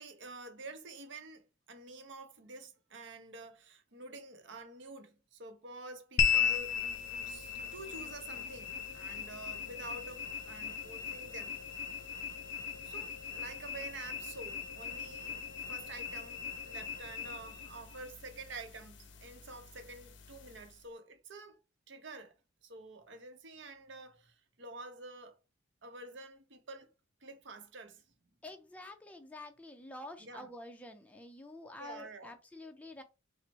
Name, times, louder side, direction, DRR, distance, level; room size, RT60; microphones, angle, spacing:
voice 1, 0.0-6.8 7.3-11.5 12.8-15.4 15.7-21.6 21.9-22.3 22.6-25.3 25.8-26.9 27.2-28.0 30.2-30.5 31.8-32.3, right 2 dB, 65° right, 0.8 m, -48 dB
sound 1, 6.2-20.8, left 8 dB, 65° left, 0.5 m, -38 dB
voice 2, 28.4-33.0, left 2 dB, 5° left, 0.4 m, -48 dB
4.0 x 2.0 x 4.4 m
head